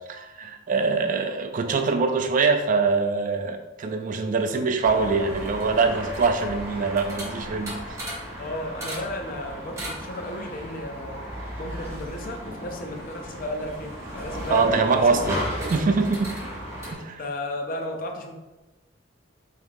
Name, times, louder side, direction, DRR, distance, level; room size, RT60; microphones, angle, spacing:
voice 1, 0.1-8.0 14.5-15.4 15.7-16.3 16.9-17.2, right 4 dB, 45° right, 6 dB, 0.4 m, -23 dB
sound 1, 4.8-16.9, equal, 15° right, 1.0 m, -35 dB
voice 2, 8.4-11.3 11.6-16.0 17.2-18.3, left 1 dB, 45° left, 3 dB, 0.6 m, -34 dB
3.6 x 2.8 x 3.5 m, 1.1 s
head